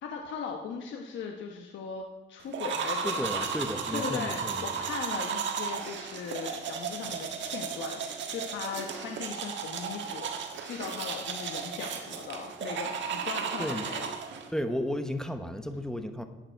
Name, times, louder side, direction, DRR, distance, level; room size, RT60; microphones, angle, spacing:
voice 1, 0.0-3.3 3.9-14.1, left 6 dB, 70° left, 2 dB, 1.1 m, -38 dB
sound 1, 2.5-14.5, right 6 dB, 70° right, 1.4 m, -34 dB
voice 2, 3.0-4.6 13.6-13.9 14.5-16.2, left 1 dB, 5° left, 7 dB, 1.0 m, -33 dB
12.5 x 8.9 x 4.6 m, 1.1 s
cardioid pair, 90°, 20 cm